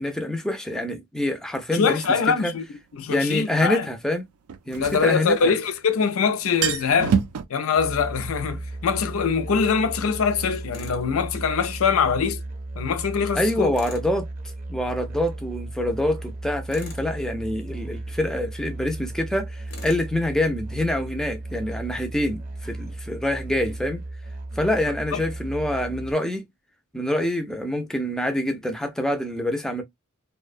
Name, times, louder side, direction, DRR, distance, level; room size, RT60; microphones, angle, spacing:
voice 1, 0.0-2.0 2.4-2.5 3.1-4.3 4.7-5.5 13.3-14.3 14.7-24.0 24.5-26.4 26.9-29.8, left 1 dB, 5° left, 0.3 m, -26 dB
voice 2, 1.7-3.9 4.8-7.2 7.5-12.4 12.8-13.7 25.1-25.2, left 6 dB, 70° left, 0.4 m, -23 dB
sound 1, 2.0-2.1 4.5-5.8 6.1-6.2 6.4-7.5, right 7 dB, 80° right, 0.4 m, -26 dB
Musical instrument, 7.7-26.1, right 2 dB, 40° right, 0.6 m, -35 dB
Tools, 10.7-11.0 13.7-14.1 16.7-17.1 19.7-20.1, left 4 dB, 90° left, 0.9 m, -42 dB
2.5 x 2.1 x 2.4 m
head